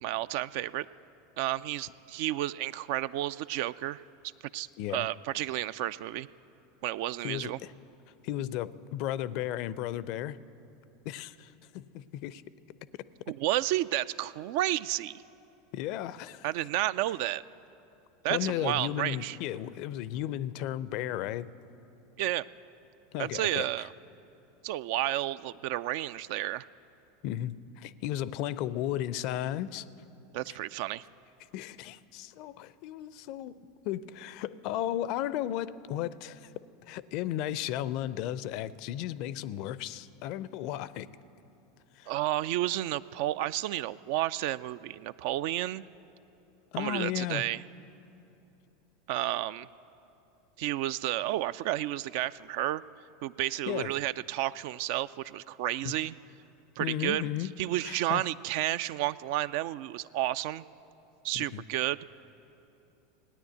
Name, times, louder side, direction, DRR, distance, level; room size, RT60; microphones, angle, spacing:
voice 1, 0.0-0.9 1.4-4.0 4.5-6.3 6.8-7.6 13.3-15.2 16.4-17.4 18.2-19.4 22.2-22.4 23.2-23.9 24.6-26.7 30.3-31.0 42.1-45.8 46.8-47.6 49.1-49.7 50.6-52.8 53.2-56.2 56.8-60.6 61.2-62.0, right 14 dB, 60° right, 17 dB, 0.3 m, -31 dB
voice 2, 7.2-7.7 8.2-10.4 11.0-12.4 15.7-16.5 18.3-21.5 23.1-23.7 27.2-29.8 31.5-36.5 36.9-41.1 42.0-42.1 46.7-47.4 53.7-53.9 55.8-55.9 56.8-57.5 57.8-58.2 61.3-61.6, left 12 dB, 55° left, 18 dB, 0.4 m, -34 dB
17.0 x 9.9 x 8.0 m, 2.9 s
figure-of-eight pair, 85°, 0 cm